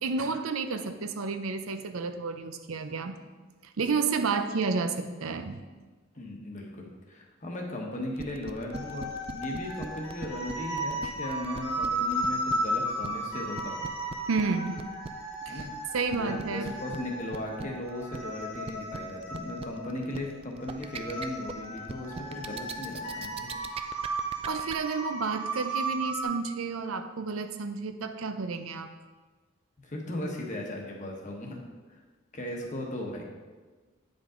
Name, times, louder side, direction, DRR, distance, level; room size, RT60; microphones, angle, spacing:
voice 1, 0.0-3.2 3.8-5.6 11.0-11.1 14.3-14.8 15.5-15.6 15.9-16.8 24.4-28.9, right 4 dB, 90° right, 8 dB, 0.6 m, -31 dB
voice 2, 6.2-13.9 15.5-15.7 16.1-23.7 29.8-31.6 31.9-32.0 32.3-33.2, left 1 dB, 35° left, 0 dB, 1.1 m, -37 dB
sound 1, 8.2-24.7, right 4 dB, 30° right, 0.3 m, -40 dB
sound 2, 8.7-26.2, right 1 dB, 80° left, 1.9 m, -35 dB
9.0 x 5.2 x 3.7 m, 1.3 s
head